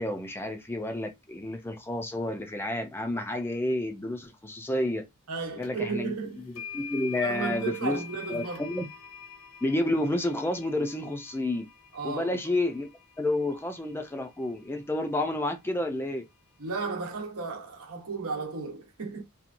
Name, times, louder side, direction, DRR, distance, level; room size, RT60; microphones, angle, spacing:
voice 1, 0.0-5.1 5.6-6.1 6.7-8.0 8.3-8.9 9.6-11.7 12.0-12.9 13.2-16.2, left 1 dB, 10° left, 0.4 m, -30 dB
voice 2, 5.3-6.5 7.2-8.6 11.9-12.3 16.6-19.2, right 4 dB, 90° right, 0.9 m, -34 dB
sound 1, 5.6-5.7 6.5-14.6, left 7 dB, 85° left, 1.0 m, -45 dB
2.8 x 2.2 x 2.5 m
head